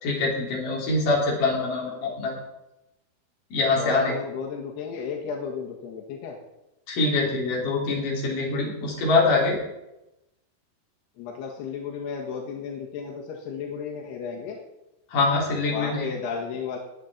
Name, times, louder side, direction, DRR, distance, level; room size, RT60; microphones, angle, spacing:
voice 1, 0.0-2.3 3.5-4.1 6.9-9.6 15.1-16.1, left 3 dB, 55° left, -3 dB, 5.1 m, -24 dB
voice 2, 3.7-6.4 11.2-14.6 15.7-16.8, left 6 dB, 90° left, -1 dB, 3.7 m, -33 dB
19.0 x 8.0 x 4.4 m, 0.91 s
omnidirectional pair, 4.6 m